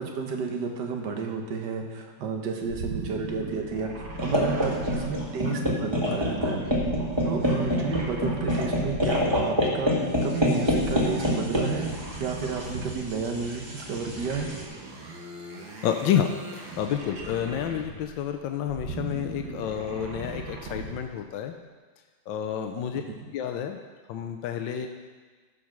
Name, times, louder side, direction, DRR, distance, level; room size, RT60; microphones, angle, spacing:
voice 1, 0.0-3.9 4.2-6.6 7.2-11.9 12.2-14.5, right 5 dB, 65° right, 2 dB, 1.8 m, -31 dB
sound 1, 2.7-5.7 6.6-9.3 10.6-13.2 14.2-18.1 18.6-21.1, right 3 dB, 85° right, 2.1 m, -38 dB
sound 2, 4.2-14.6, left 1 dB, 15° right, 1.5 m, -27 dB
voice 2, 15.8-16.3 16.5-21.5 22.3-23.0 23.3-23.8 24.1-24.9, left 9 dB, 80° left, 5 dB, 1.4 m, -29 dB
14.5 x 5.1 x 6.0 m, 1.4 s
omnidirectional pair, 2.1 m